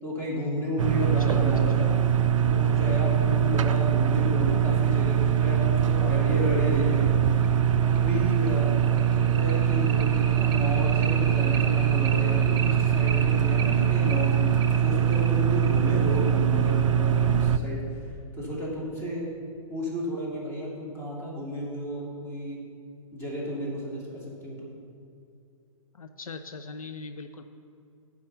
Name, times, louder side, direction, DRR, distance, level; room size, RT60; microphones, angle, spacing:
voice 1, 0.0-1.9 2.4-7.1 7.8-19.3 19.7-22.6 23.1-24.7, equal, 15° left, -4 dB, 2.3 m, -32 dB
sound 1, 0.8-17.6, right 9 dB, 60° right, 0.4 m, -23 dB
sound 2, 1.3-4.4 5.9-6.0 6.4-6.5 6.9-7.0 7.4-17.5, right 5 dB, 40° right, 0.8 m, -38 dB
voice 2, 25.9-27.4, left 4 dB, 70° left, 8 dB, 0.5 m, -40 dB
9.5 x 4.8 x 6.6 m, 2.4 s
figure-of-eight pair, 115°, 18 cm